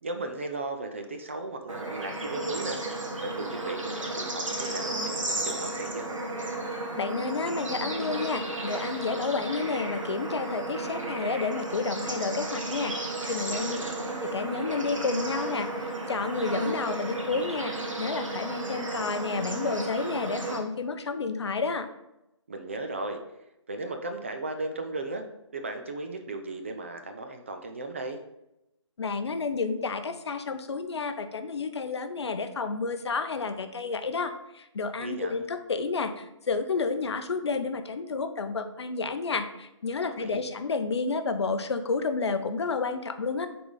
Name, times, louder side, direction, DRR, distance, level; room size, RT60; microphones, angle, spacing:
voice 1, 0.0-2.8 3.2-6.1 13.5-13.9 22.5-23.2 23.7-25.2 25.5-28.2 35.0-35.5 40.0-40.4, right 2 dB, 25° right, 5 dB, 0.4 m, -36 dB
Bird / Insect / Frog, 1.7-20.6, right 2 dB, 85° right, 1.4 m, -33 dB
voice 2, 6.9-13.8 14.2-21.9 29.0-43.5, left 4 dB, 60° left, 9 dB, 0.6 m, -30 dB
6.5 x 3.9 x 3.8 m, 0.89 s
figure-of-eight pair, 155°, 16 cm